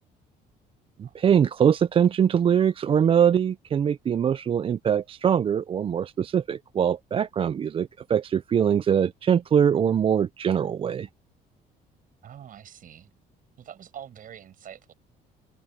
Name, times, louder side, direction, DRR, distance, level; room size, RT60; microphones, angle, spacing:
voice 1, 1.0-11.1, right 8 dB, 35° right, 0.4 m, -22 dB
voice 2, 12.2-13.1 13.6-14.9, right 9 dB, 55° right, 6.2 m, -45 dB
cardioid pair, 110°, 17 cm